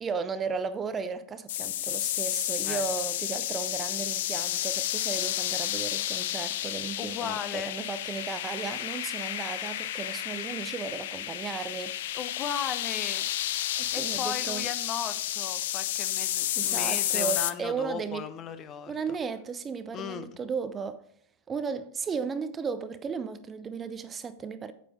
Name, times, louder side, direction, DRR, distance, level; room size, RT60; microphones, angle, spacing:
voice 1, 0.0-12.0 13.8-14.7 16.6-18.3 18.9-21.0 21.5-24.7, right 5 dB, 20° right, 0.6 m, -35 dB
sound 1, 1.5-17.5, left 13 dB, 55° left, 0.5 m, -31 dB
voice 2, 7.0-7.7 12.1-13.3 13.9-18.9 19.9-20.3, left 8 dB, 30° left, 0.8 m, -36 dB
9.4 x 7.8 x 3.0 m
figure-of-eight pair, 90°, 0 cm